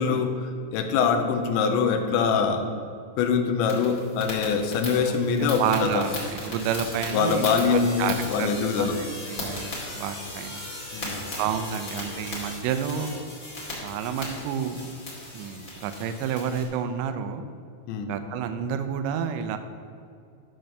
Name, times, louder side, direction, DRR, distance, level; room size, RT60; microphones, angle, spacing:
voice 1, 0.0-2.7 3.2-6.1 7.1-9.0 10.9-11.2 17.9-18.1, left 5 dB, 85° left, 6 dB, 3.0 m, -24 dB
sound 1, 3.6-16.6, left 1 dB, 25° left, 1.9 m, -37 dB
voice 2, 5.1-8.9 9.2-10.6 11.4-13.2 13.8-14.9 15.3-17.5 18.1-19.6, right 7 dB, 85° right, 8 dB, 2.9 m, -30 dB
11.0 x 4.6 x 6.6 m, 2.5 s
omnidirectional pair, 5.2 m